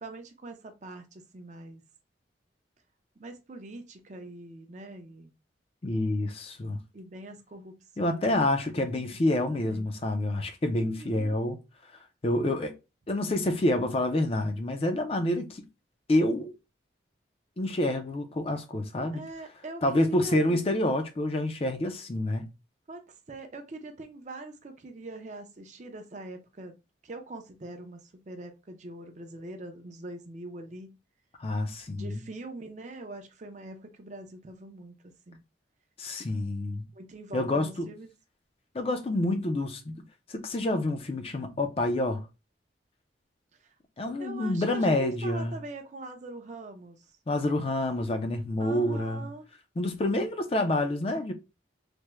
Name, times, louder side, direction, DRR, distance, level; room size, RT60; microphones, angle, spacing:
voice 1, 0.0-1.8 3.2-5.3 6.9-8.3 9.1-9.9 10.7-11.4 19.1-20.7 22.9-23.0 23.3-26.8 27.0-31.0 32.0-34.9 35.3-35.4 36.9-38.1 43.6-43.7 44.2-47.2 48.6-49.5, right 2 dB, 40° right, 0.5 m, -43 dB
voice 2, 5.8-6.8 8.0-11.6 12.2-12.7 13.1-15.6 16.1-16.5 17.6-19.2 19.8-22.5 31.4-32.2 36.0-36.8 37.3-37.9 38.7-39.9 40.3-42.3 44.0-45.6 47.3-49.3 49.8-51.3, left 1 dB, 30° left, 0.4 m, -28 dB
3.4 x 2.1 x 2.9 m
head